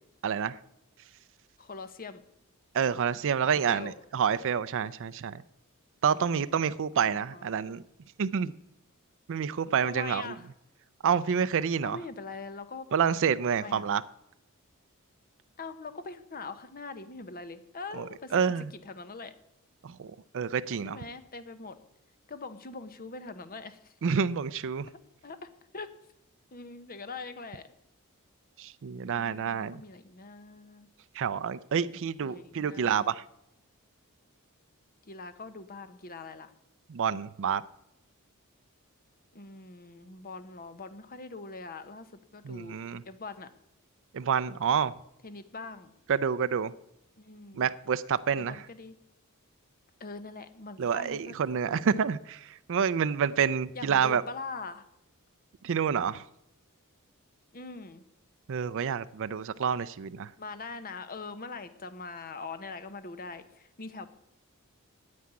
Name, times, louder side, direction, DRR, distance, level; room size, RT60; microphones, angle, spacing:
voice 1, 0.2-0.5 2.7-5.3 6.0-7.8 8.2-8.5 9.3-10.3 11.0-12.0 12.9-14.0 18.0-18.1 18.3-18.7 19.8-21.0 24.0-24.9 28.6-29.8 31.2-33.2 36.9-37.6 42.4-43.0 44.1-44.9 46.1-46.7 47.6-48.6 50.8-54.2 55.6-56.3 58.5-60.3, right 7 dB, 60° right, 0.4 m, -28 dB
voice 2, 1.6-2.2 3.4-3.9 6.1-6.7 7.0-7.6 9.8-10.5 11.8-12.9 13.5-13.9 15.6-18.3 18.7-19.3 20.8-21.8 22.3-23.9 24.9-25.0 25.2-25.9 26.5-27.7 29.1-30.9 32.2-33.1 35.0-36.5 39.3-42.1 42.3-42.8 43.0-43.5 45.2-45.9 47.2-47.7 48.4-48.9 50.0-51.4 51.7-51.8 53.7-54.8 57.5-58.0 60.4-64.1, left 4 dB, 40° left, 1.0 m, -42 dB
9.6 x 8.5 x 9.6 m
head